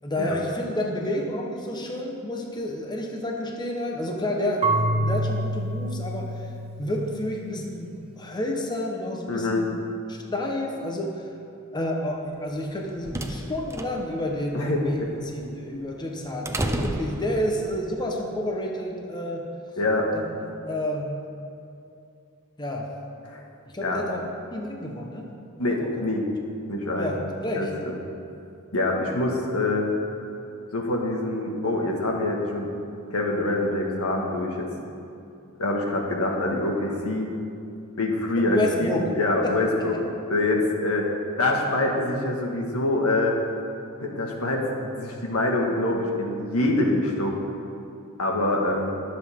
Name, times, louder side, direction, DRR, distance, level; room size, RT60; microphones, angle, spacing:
voice 1, 0.0-6.3 6.8-9.7 10.1-11.3 11.7-15.0 15.3-19.5 20.3-21.2 22.6-22.9 23.7-24.2 24.5-25.3 25.7-25.9 27.0-27.7 38.5-39.1 39.4-39.9, left 1 dB, 20° left, 0 dB, 1.1 m, -30 dB
Marimba xylophone / Wood, 4.6-7.5, right 1 dB, 30° right, 1.1 m, -27 dB
voice 2, 9.3-9.7 14.5-15.1 19.8-20.1 23.2-23.4 23.8-24.0 25.6-26.3 26.7-27.1 27.5-28.0 28.7-29.9 30.7-32.7 33.1-34.7 35.6-37.3 38.0-39.9 40.3-41.1 41.4-43.4 44.0-47.4 48.2-48.9, left 2 dB, 80° left, 0 dB, 1.8 m, -25 dB
sound 1, 12.5-17.8, right 1 dB, 15° right, 0.6 m, -33 dB
23.0 x 7.7 x 3.7 m, 2.6 s
head